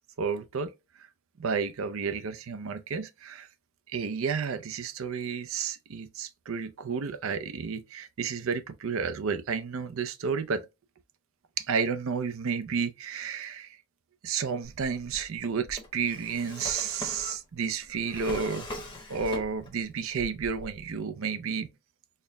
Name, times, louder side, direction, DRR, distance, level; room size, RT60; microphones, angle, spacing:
voice 1, 0.2-0.7 1.0-1.1 1.4-3.5 3.9-10.6 11.6-13.8 14.2-18.7 19.1-21.7, right 6 dB, 65° right, 0.5 m, -31 dB
Drawer open or close, 14.6-19.8 20.1-21.0, left 2 dB, 20° left, 1.0 m, -41 dB
4.3 x 2.1 x 3.2 m
head